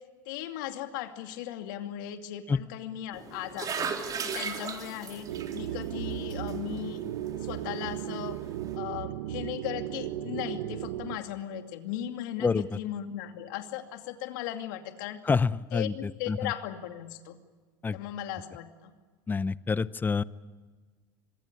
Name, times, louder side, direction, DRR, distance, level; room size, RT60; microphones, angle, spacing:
voice 1, 0.3-3.9 4.2-7.0 7.4-8.4 8.7-15.2 15.7-17.4 17.9-18.9, left 12 dB, 75° left, 7 dB, 2.5 m, -37 dB
sound 1, 3.1-8.8, right 6 dB, 35° right, 3.3 m, -38 dB
sound 2, 5.3-11.2, right 12 dB, 85° right, 1.2 m, -35 dB
voice 2, 15.3-16.4 17.8-18.0 19.3-20.2, left 5 dB, 15° left, 18 dB, 0.8 m, -27 dB
25.5 x 22.5 x 8.6 m, 1.4 s
supercardioid pair, 105°, 11 cm